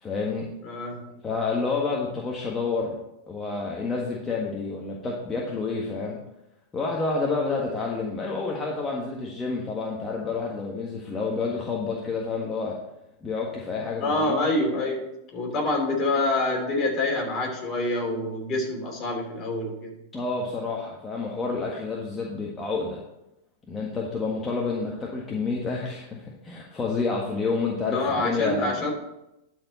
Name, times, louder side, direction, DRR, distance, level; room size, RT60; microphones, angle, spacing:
voice 1, 0.0-0.5 1.2-2.9 3.3-6.2 6.7-12.8 13.2-14.4 20.1-23.0 23.7-28.8, left 4 dB, 20° left, -2 dB, 1.5 m, -29 dB
voice 2, 0.6-1.1 14.0-19.9 27.9-28.9, left 2 dB, 35° left, 0 dB, 3.2 m, -26 dB
12.0 x 4.8 x 4.2 m, 0.89 s
hypercardioid pair, 110°, 0 cm